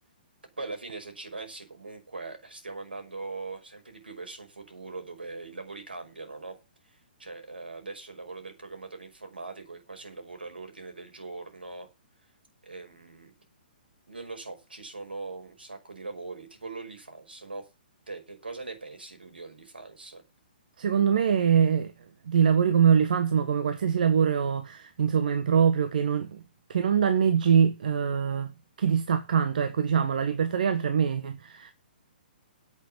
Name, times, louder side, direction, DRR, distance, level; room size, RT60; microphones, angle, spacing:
voice 1, 0.6-6.6 6.9-11.9 12.6-13.3 14.1-17.7 18.1-20.2, right 3 dB, 75° right, 5.5 m, -41 dB
voice 2, 20.8-21.9 22.3-26.4 26.7-28.5 28.8-31.7, right 7 dB, 55° right, 1.4 m, -23 dB
9.0 x 8.5 x 8.7 m
figure-of-eight pair, 120°, 5 cm